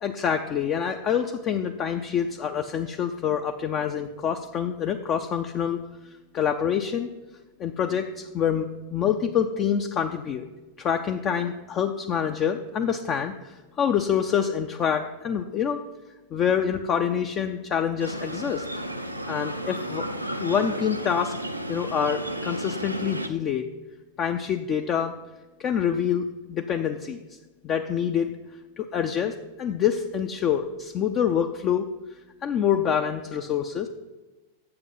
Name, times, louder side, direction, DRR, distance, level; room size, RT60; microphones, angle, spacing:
voice 1, 0.0-5.8 6.0-7.1 7.6-10.5 10.8-15.8 16.3-18.7 19.3-20.1 20.4-21.3 21.7-23.7 24.2-25.1 25.6-27.2 27.6-28.3 28.8-31.9 32.4-33.9, left 8 dB, 30° left, 5 dB, 0.5 m, -26 dB
sound 1, 18.0-23.3, right 1 dB, 90° right, 0.6 m, -33 dB
7.8 x 7.4 x 5.6 m, 1.1 s
figure-of-eight pair, 90°, 0 cm